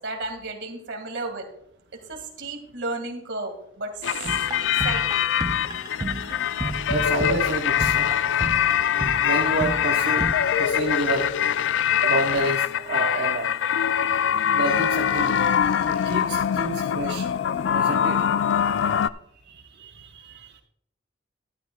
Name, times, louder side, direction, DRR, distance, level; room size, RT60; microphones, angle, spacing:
voice 1, 0.0-1.5 2.1-3.9 4.6-5.2, right 2 dB, 75° right, 4 dB, 2.0 m, -33 dB
sound 1, 4.0-19.1, left 9 dB, 80° left, 0.3 m, -23 dB
sound 2, 4.2-10.3, right 2 dB, 20° right, 0.3 m, -32 dB
voice 2, 5.8-8.2 8.6-11.4 12.0-13.5 14.5-15.5 15.9-17.3 17.7-18.3 19.4-20.6, right 2 dB, 60° right, -1 dB, 0.9 m, -30 dB
12.5 x 11.5 x 2.3 m, 0.71 s
head